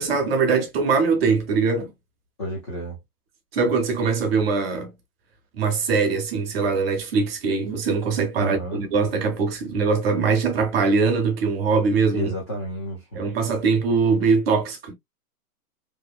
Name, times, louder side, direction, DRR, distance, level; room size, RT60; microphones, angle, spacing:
voice 1, 0.0-1.9 3.5-4.9 5.6-12.3 13.1-14.9, right 4 dB, 40° right, 0.8 m, -22 dB
voice 2, 2.4-3.0 8.4-8.8 12.1-13.2, equal, 20° left, 0.4 m, -31 dB
2.9 x 2.1 x 2.3 m
hypercardioid pair, 150°, 47 cm